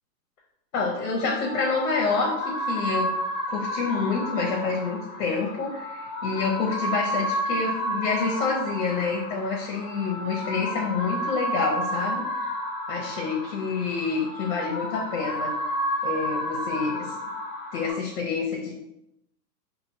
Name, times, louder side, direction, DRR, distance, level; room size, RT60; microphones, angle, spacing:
voice 1, 0.7-3.1 3.5-12.5 12.9-15.5 16.0-17.2 17.7-18.7, left 4 dB, 60° left, -2 dB, 1.0 m, -28 dB
sound 1, 1.0-17.9, equal, 15° left, 1.2 m, -31 dB
4.4 x 2.7 x 2.7 m, 0.84 s
hypercardioid pair, 175°, 47 cm